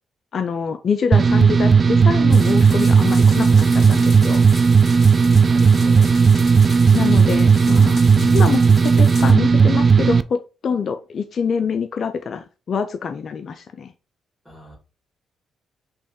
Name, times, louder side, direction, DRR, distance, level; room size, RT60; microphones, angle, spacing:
voice 1, 0.3-4.4 6.9-8.0 8.3-13.9, left 6 dB, 55° left, 8 dB, 0.4 m, -25 dB
sound 1, 1.1-10.2, right 5 dB, 45° right, 0.3 m, -14 dB
sound 2, 2.3-9.3, left 2 dB, 35° left, 2.1 m, -38 dB
voice 2, 5.1-6.2 6.9-7.2 8.1-8.4 14.4-14.8, left 4 dB, 5° right, -3 dB, 2.2 m, -38 dB
3.5 x 3.1 x 4.3 m, 0.31 s
supercardioid pair, 60°, 0 cm